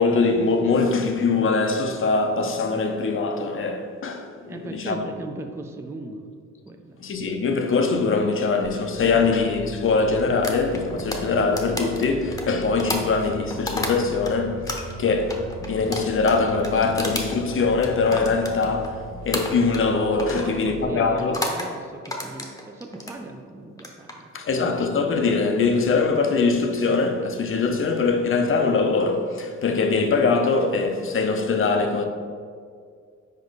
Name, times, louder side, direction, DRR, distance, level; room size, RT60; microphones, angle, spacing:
voice 1, 0.0-5.1 7.0-21.4 24.3-32.0, left 4 dB, 45° left, 0.6 m, -22 dB
voice 2, 4.5-6.2 6.7-7.0 20.3-24.3, right 2 dB, 10° right, 0.4 m, -38 dB
sound 1, 8.6-20.8, right 1 dB, 65° right, 1.0 m, -39 dB
sound 2, 10.4-14.3 14.7-18.9 19.3-19.9 20.2-20.5 21.2-21.7 22.0-23.2 23.7-24.1, left 1 dB, 10° left, 0.8 m, -31 dB
5.2 x 4.5 x 4.0 m
cardioid pair, 90°, 30 cm